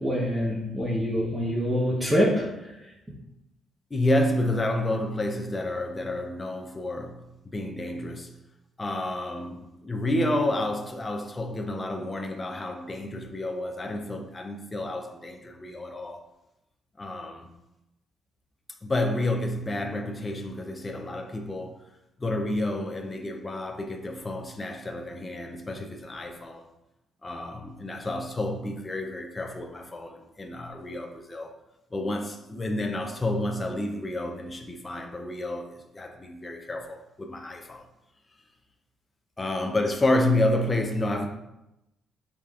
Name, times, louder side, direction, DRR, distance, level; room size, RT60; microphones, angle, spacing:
voice 1, 0.0-2.4, equal, 15° right, 0.9 m, -25 dB
voice 2, 3.9-8.4 8.8-16.2 17.0-17.5 18.8-21.8 22.2-26.7 27.2-31.5 31.9-37.9 39.4-41.3, left 1 dB, 20° left, 0.5 m, -30 dB
4.9 x 3.3 x 2.3 m
cardioid pair, 90°, 0 cm